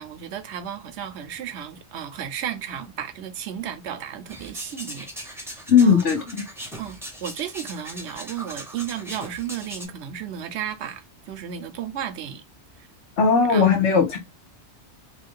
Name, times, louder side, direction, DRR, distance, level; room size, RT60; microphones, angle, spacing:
voice 1, 0.0-5.4 5.8-6.2 6.8-12.4 13.5-13.7, right 9 dB, 70° right, 0.8 m, -34 dB
sound 1, 4.3-9.8, right 1 dB, 5° right, 0.6 m, -39 dB
voice 2, 5.7-6.4 13.2-14.2, left 6 dB, 75° left, 1.3 m, -18 dB
3.0 x 2.4 x 3.6 m
omnidirectional pair, 1.2 m